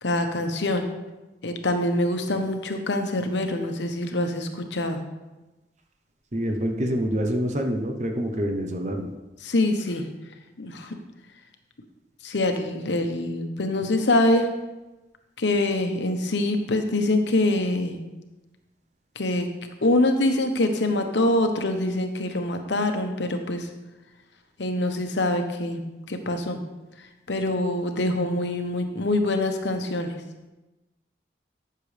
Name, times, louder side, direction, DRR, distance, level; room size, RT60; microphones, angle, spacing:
voice 1, 0.0-0.9 1.4-5.0 9.4-10.0 10.6-11.0 12.2-14.5 15.4-18.0 19.2-19.5 19.8-23.7 24.6-25.8 26.1-26.6 27.3-30.2, left 1 dB, 85° left, 5 dB, 1.0 m, -24 dB
voice 2, 6.3-9.1, equal, 40° right, 3 dB, 0.8 m, -26 dB
13.5 x 6.8 x 3.4 m, 1.1 s
head